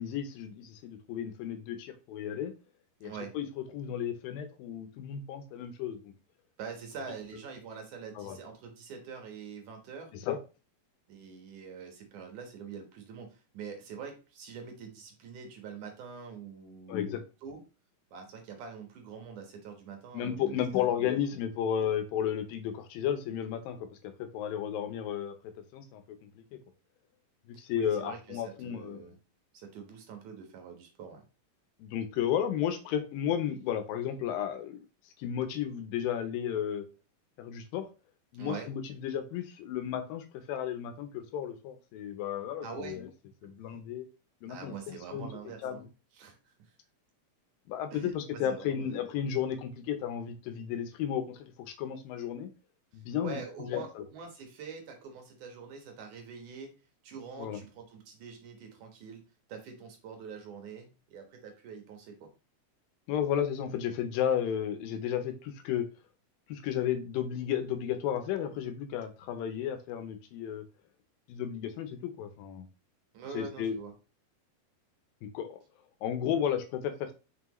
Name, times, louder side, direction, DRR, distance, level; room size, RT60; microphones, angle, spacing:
voice 1, 0.0-2.5 3.0-3.5 3.7-6.1 8.2-8.4 10.1-10.4 16.9-17.2 20.1-26.4 27.5-29.1 31.8-34.8 35.2-36.9 37.4-37.9 38.3-43.1 43.4-44.1 44.4-45.3 45.6-45.9 47.7-52.5 52.9-54.0 57.4-57.6 63.1-65.9 66.5-70.7 71.3-72.7 73.3-73.8 75.2-75.6 76.0-77.1, left 9 dB, 80° left, 2.5 m, -33 dB
voice 2, 3.0-3.3 6.6-10.1 11.1-17.0 17.4-17.6 18.1-21.1 27.5-29.2 29.5-31.2 38.4-38.7 42.6-43.0 43.4-43.5 44.5-45.8 46.1-46.7 47.9-48.9 52.9-56.7 57.0-59.2 59.5-62.3 73.1-73.9, right 6 dB, 65° right, 2.6 m, -45 dB
6.0 x 5.7 x 3.0 m
omnidirectional pair, 4.1 m